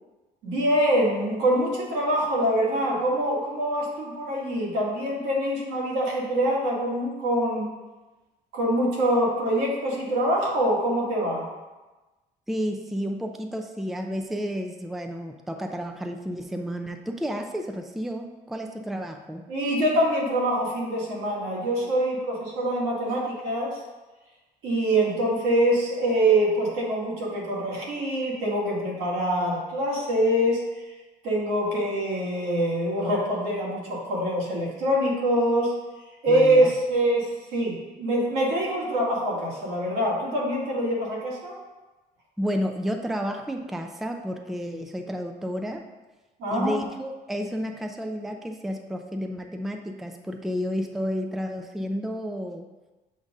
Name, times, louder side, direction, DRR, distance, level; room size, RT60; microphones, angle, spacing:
voice 1, 0.4-7.7 8.5-11.5 19.5-23.8 24.6-30.6 31.2-35.7 36.2-41.6 46.4-46.8, right 1 dB, 85° right, -4 dB, 1.9 m, -24 dB
voice 2, 12.5-19.4 36.3-36.7 42.4-45.8 46.5-52.7, equal, ahead, 4 dB, 0.4 m, -31 dB
7.4 x 2.5 x 5.2 m, 1.1 s
cardioid pair, 110°, 17 cm